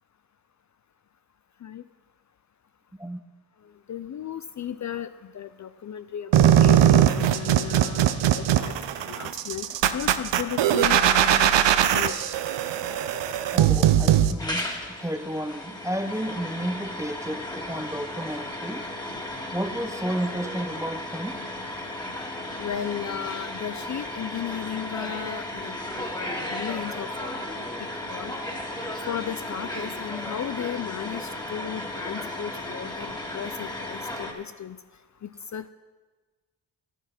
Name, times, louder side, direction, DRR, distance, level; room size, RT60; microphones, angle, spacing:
voice 1, 3.9-8.1 8.6-8.7 9.1-9.7 9.9-12.1 22.6-26.0 26.4-27.3 28.1-28.3 29.1-34.8 35.2-35.7, left 9 dB, 45° left, 0.5 m, -35 dB
sound 1, 6.3-14.3, right 10 dB, 80° right, 0.7 m, -20 dB
voice 2, 13.5-14.7 15.0-18.9 19.5-21.4, right 1 dB, 5° right, 0.7 m, -32 dB
sound 2, 14.4-34.3, left 1 dB, 10° left, 2.0 m, -35 dB
11.0 x 9.1 x 5.9 m
cardioid pair, 55°, 42 cm